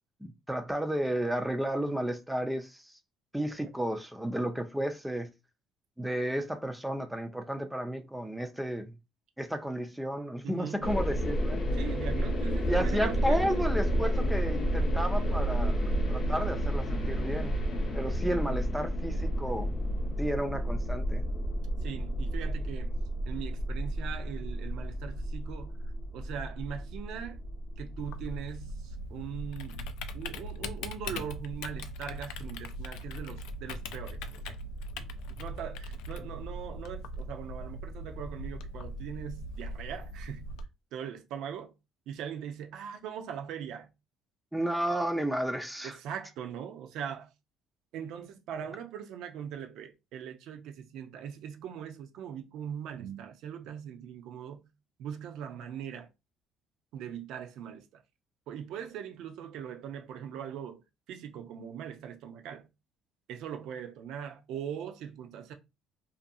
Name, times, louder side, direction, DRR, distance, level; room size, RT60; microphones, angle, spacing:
voice 1, 0.2-2.9 3.3-5.3 6.0-8.9 9.4-11.6 12.7-15.8 16.1-17.6 17.9-19.7 20.2-21.2 44.5-46.0, right 1 dB, 5° right, 0.3 m, -32 dB
voice 2, 10.4-11.0 11.7-13.8 21.8-22.9 23.3-25.8 26.1-27.4 27.8-34.6 35.0-40.6 40.9-41.7 42.1-43.9 45.8-47.3 47.9-54.7 55.0-56.1 56.9-58.0 58.5-60.8 61.1-62.7 63.3-65.5, right 8 dB, 70° right, 0.5 m, -41 dB
sound 1, 10.8-28.4, equal, 35° left, 0.6 m, -31 dB
Typing, 28.0-40.6, equal, 85° left, 0.3 m, -40 dB
2.5 x 2.3 x 2.6 m
cardioid pair, 130°, 0 cm